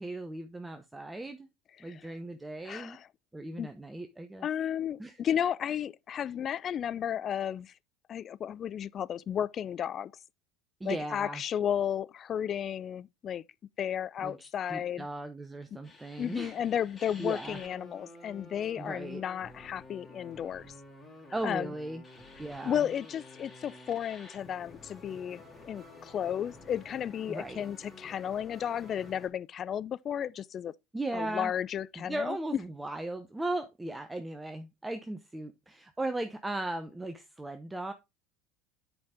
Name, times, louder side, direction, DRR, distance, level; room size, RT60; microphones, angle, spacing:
voice 1, 0.0-1.5 1.8-3.0 3.3-4.5 5.0-5.2 10.8-11.4 14.2-16.5 17.2-17.6 18.8-19.2 21.3-22.0 22.4-22.8 27.3-27.6 30.9-31.5 32.0-37.9, right 2 dB, 10° right, 0.8 m, -37 dB
voice 2, 1.8-2.1 2.6-3.1 3.6-3.7 4.4-7.7 8.1-10.1 10.8-13.4 13.8-15.1 15.7-15.9 16.2-20.7 21.4-21.7 22.6-30.7 31.1-32.4, left 9 dB, 40° left, 0.4 m, -33 dB
sound 1, 15.8-29.3, left 2 dB, 25° left, 3.4 m, -51 dB
7.9 x 5.3 x 3.5 m
hypercardioid pair, 75°, 0 cm